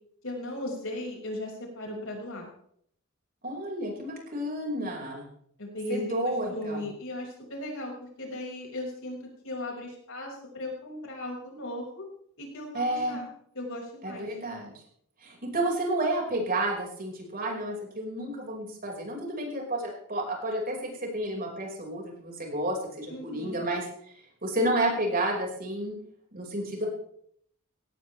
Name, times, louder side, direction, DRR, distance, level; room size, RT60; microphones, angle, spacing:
voice 1, 0.2-2.5 5.6-12.0 12.4-13.3 13.5-14.3 23.1-23.6, left 1 dB, 65° left, 0 dB, 5.8 m, -37 dB
voice 2, 3.4-5.3 5.9-6.8 12.7-13.2 14.0-14.7 15.2-23.8 24.4-25.9 26.3-26.9, right 1 dB, 45° right, 0 dB, 5.4 m, -31 dB
18.0 x 17.5 x 3.4 m, 0.66 s
head